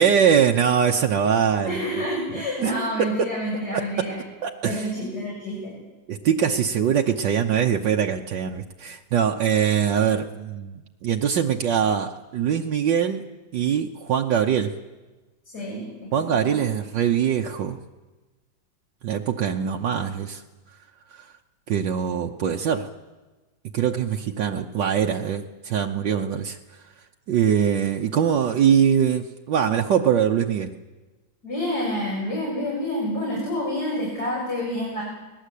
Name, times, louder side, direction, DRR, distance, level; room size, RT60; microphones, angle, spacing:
voice 1, 0.0-2.0 2.3-2.7 3.7-3.8 4.4-4.9 6.1-13.2 13.5-14.7 16.1-17.8 19.0-20.4 21.1-21.3 21.7-22.9 23.7-26.6 27.3-30.7, right 8 dB, 70° right, 2 dB, 1.6 m, -22 dB
voice 2, 1.6-4.2 4.6-5.7 15.5-16.6 31.4-35.0, equal, 55° left, -5 dB, 7.3 m, -28 dB
23.5 x 19.5 x 8.4 m, 1.2 s
omnidirectional pair, 2.1 m